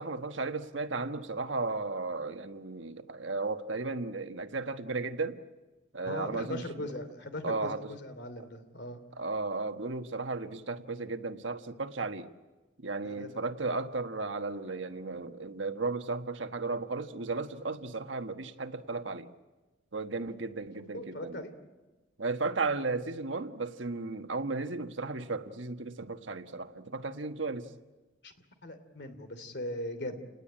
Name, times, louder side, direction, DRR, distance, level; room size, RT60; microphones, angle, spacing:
voice 1, 0.0-5.4 5.9-6.9 7.4-7.9 8.4-8.5 9.2-12.3 12.8-19.3 19.9-21.5 22.2-27.7, right 3 dB, 85° right, 8 dB, 1.4 m, -35 dB
voice 2, 6.1-9.0 13.0-13.4 20.9-21.5 28.2-28.3 28.6-30.2, left 1 dB, 60° left, 9 dB, 3.1 m, -39 dB
29.0 x 19.5 x 8.8 m, 1.2 s
head